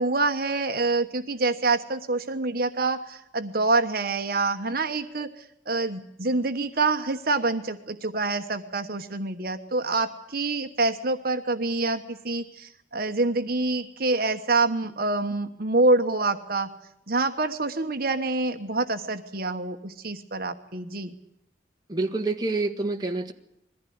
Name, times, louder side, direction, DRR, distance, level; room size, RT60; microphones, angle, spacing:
voice 1, 0.0-16.7 17.1-21.1, right 3 dB, 55° right, 6 dB, 1.2 m, -26 dB
voice 2, 21.9-23.3, right 3 dB, 20° right, 2 dB, 1.6 m, -27 dB
21.5 x 14.5 x 9.5 m, 0.79 s
head